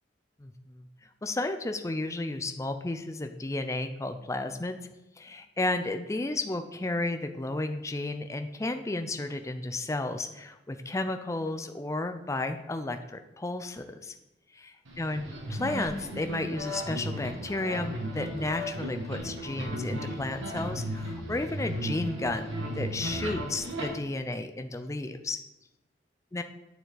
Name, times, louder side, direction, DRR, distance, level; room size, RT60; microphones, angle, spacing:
voice 1, 0.4-0.8 1.2-4.8 5.2-14.1 15.0-22.5 22.8-25.4 26.3-26.4, left 2 dB, 15° left, 8 dB, 0.4 m, -33 dB
sound 1, 14.8-23.8, equal, 90° right, 2.0 m, -35 dB
9.1 x 6.9 x 3.9 m, 0.95 s
head